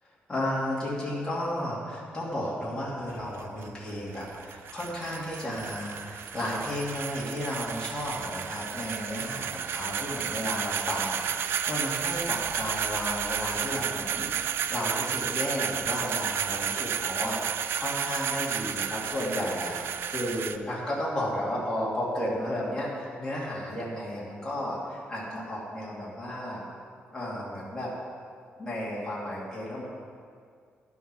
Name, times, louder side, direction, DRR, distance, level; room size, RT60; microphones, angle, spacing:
voice 1, 0.3-26.6 27.1-27.9 28.6-29.9, left 1 dB, 15° left, -7 dB, 2.4 m, -33 dB
sound 1, 3.0-20.6, right 8 dB, 70° right, 0.4 m, -32 dB
11.0 x 7.2 x 6.1 m, 2.2 s
wide cardioid pair, 175°, 4 cm